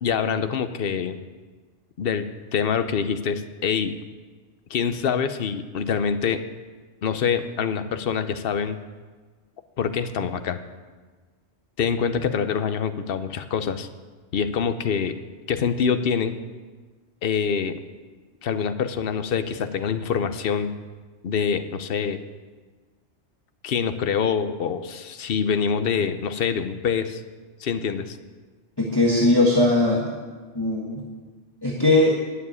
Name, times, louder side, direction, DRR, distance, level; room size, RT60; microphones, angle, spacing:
voice 1, 0.0-1.2 2.0-2.3 2.5-3.9 4.7-6.4 7.0-8.8 9.8-10.6 11.8-13.9 14.3-15.2 15.5-16.3 17.2-17.8 18.4-20.7 21.2-22.2 23.6-27.2 27.6-28.2, left 6 dB, 60° left, 10 dB, 0.9 m, -25 dB
voice 2, 28.8-30.2 30.5-31.0 31.6-32.2, left 2 dB, 20° left, -3 dB, 1.5 m, -19 dB
11.0 x 7.2 x 9.6 m, 1.4 s
omnidirectional pair, 1.2 m